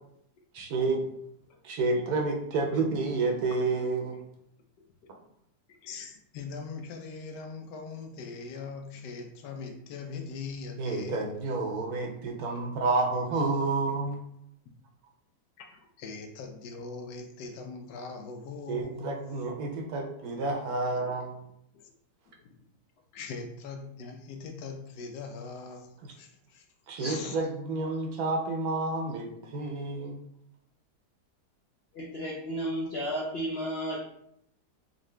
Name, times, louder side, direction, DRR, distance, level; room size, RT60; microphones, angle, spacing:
voice 1, 0.5-1.1 1.6-4.2 10.8-14.2 18.7-21.5 26.9-30.2, right 3 dB, 70° right, 2 dB, 1.1 m, -30 dB
voice 2, 5.7-11.3 15.6-19.2 21.7-21.9 22.3-22.6 23.1-26.7 27.0-27.4, left 4 dB, 85° left, 4 dB, 1.2 m, -41 dB
voice 3, 31.9-34.0, equal, 65° left, -4 dB, 0.6 m, -33 dB
3.8 x 2.5 x 3.1 m, 0.73 s
omnidirectional pair, 1.8 m